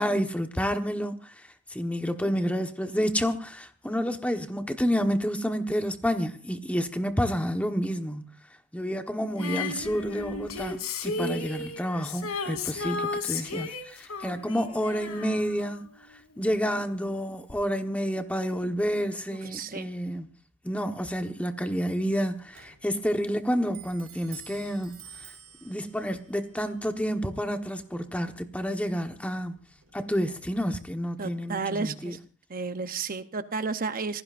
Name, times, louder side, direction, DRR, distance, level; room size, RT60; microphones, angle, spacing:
voice 1, 0.0-1.3 1.7-8.3 8.7-15.8 16.4-20.3 20.6-25.0 25.6-29.6 29.9-32.2, equal, 5° left, 1.2 m, -29 dB
Female singing, 9.4-16.4 17.5-17.6, left 3 dB, 80° left, 3.2 m, -34 dB
voice 2, 19.3-19.9 31.2-32.2 32.5-34.2, right 4 dB, 40° right, 0.8 m, -32 dB
Clock, 21.9-31.2, right 8 dB, 60° right, 4.8 m, -53 dB
26.5 x 18.5 x 2.6 m
head